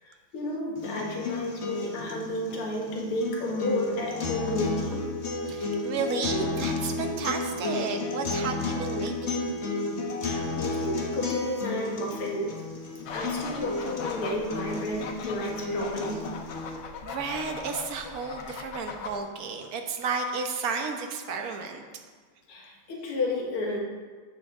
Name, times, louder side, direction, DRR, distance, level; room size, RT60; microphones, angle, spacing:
voice 1, 0.0-5.0 10.2-12.6 13.1-16.2 22.5-23.8, left 1 dB, 85° left, -1 dB, 2.4 m, -32 dB
sound 1, 0.8-16.8, left 3 dB, 40° left, 1.2 m, -32 dB
voice 2, 5.5-9.5 17.0-21.8, right 5 dB, 55° right, 4 dB, 1.2 m, -32 dB
sound 2, 13.1-19.2, left 5 dB, 65° left, 1.3 m, -39 dB
13.5 x 7.6 x 3.7 m, 1.5 s
omnidirectional pair, 2.4 m